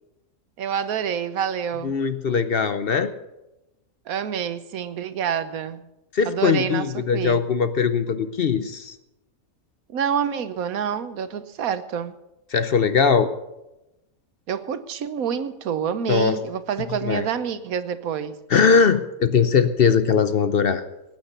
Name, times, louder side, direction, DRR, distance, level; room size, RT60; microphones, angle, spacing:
voice 1, 0.6-1.9 4.1-5.8 6.3-7.4 9.9-12.1 14.5-18.4, right 8 dB, 85° right, 12 dB, 1.3 m, -27 dB
voice 2, 1.8-3.1 6.1-9.0 12.5-13.3 16.1-16.4 17.0-17.3 18.5-20.8, left 6 dB, 50° left, 11 dB, 0.8 m, -20 dB
18.5 x 9.0 x 6.7 m, 0.96 s
omnidirectional pair, 1.4 m